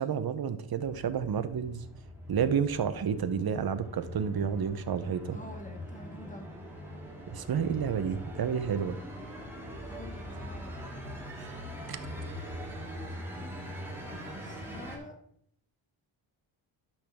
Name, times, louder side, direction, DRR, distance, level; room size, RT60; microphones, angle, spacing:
voice 1, 0.0-1.9 2.3-5.4 7.3-9.0 11.4-11.5 11.9-12.0, right 7 dB, 50° right, 11 dB, 0.9 m, -30 dB
sound 1, 0.8-15.0, equal, 5° right, 2.6 m, -42 dB
voice 2, 5.3-6.5 9.8-10.7 14.4-15.2, left 1 dB, 15° left, 4 dB, 1.6 m, -47 dB
12.0 x 6.0 x 3.6 m, 0.71 s
cardioid pair, 105°, 48 cm